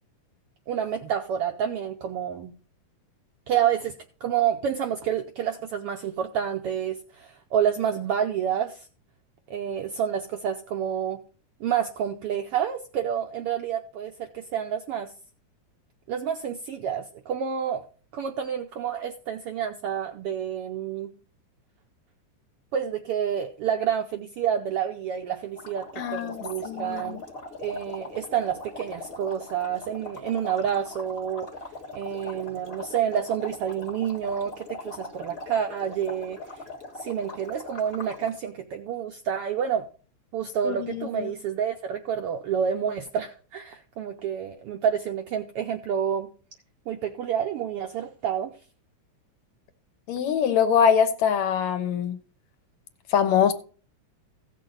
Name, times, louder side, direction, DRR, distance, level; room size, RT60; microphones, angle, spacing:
voice 1, 0.7-2.5 3.5-3.9 4.2-8.9 9.5-11.2 11.6-15.1 16.1-17.9 18.1-21.1 22.7-27.2 27.6-31.5 31.9-36.6 37.0-39.9 40.3-46.3 46.9-48.5, right 8 dB, 80° right, 1.3 m, -29 dB
sound 1, 25.6-38.4, left 2 dB, 35° left, 1.0 m, -41 dB
voice 2, 26.0-27.2 40.6-41.3 50.1-52.2 53.1-53.5, left 8 dB, 75° left, 2.3 m, -23 dB
16.0 x 6.6 x 3.8 m
omnidirectional pair, 3.4 m